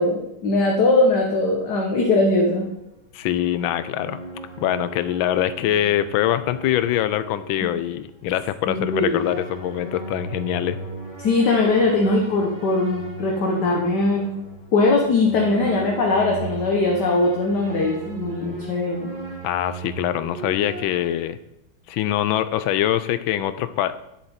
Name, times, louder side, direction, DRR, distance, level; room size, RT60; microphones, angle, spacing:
voice 1, 0.0-2.6 8.7-9.2 11.2-14.3 14.7-19.1, left 2 dB, 55° left, 0 dB, 1.6 m, -20 dB
sound 1, 2.3-8.2 8.8-21.3, right 3 dB, 20° right, 2.4 m, -37 dB
voice 2, 3.1-4.2 4.6-10.8 19.4-21.4 21.9-24.0, left 12 dB, 75° left, 14 dB, 1.3 m, -23 dB
10.0 x 7.3 x 4.3 m, 0.84 s
omnidirectional pair, 2.3 m